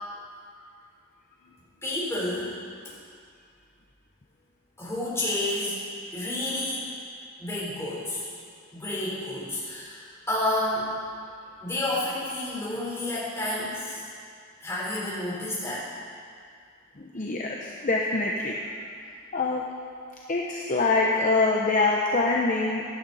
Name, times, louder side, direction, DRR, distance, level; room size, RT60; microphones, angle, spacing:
voice 1, 1.8-2.6 4.8-5.8 6.1-6.9 7.4-8.3 8.7-10.9 11.6-14.1 14.6-15.9, left 1 dB, 10° left, -8 dB, 4.1 m, -30 dB
voice 2, 17.0-18.6 19.3-19.6 20.3-22.8, left 3 dB, 35° left, -1 dB, 0.8 m, -24 dB
16.0 x 11.5 x 4.2 m, 2.2 s
head